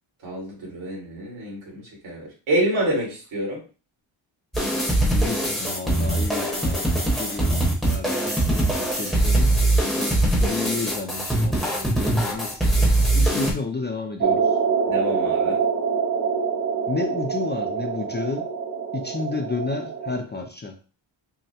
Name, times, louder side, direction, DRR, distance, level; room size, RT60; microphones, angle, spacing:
voice 1, 0.2-3.6 14.9-15.6, right 1 dB, 80° right, -3 dB, 2.1 m, -27 dB
sound 1, 4.5-13.5, right 1 dB, ahead, 0.9 m, -22 dB
voice 2, 5.1-12.7 13.1-14.6 16.9-18.5 18.9-20.8, left 3 dB, 25° left, 4 dB, 0.3 m, -31 dB
sound 2, 14.2-20.2, right 6 dB, 40° right, 0.4 m, -25 dB
5.6 x 2.0 x 2.8 m, 0.36 s
wide cardioid pair, 145°, 47 cm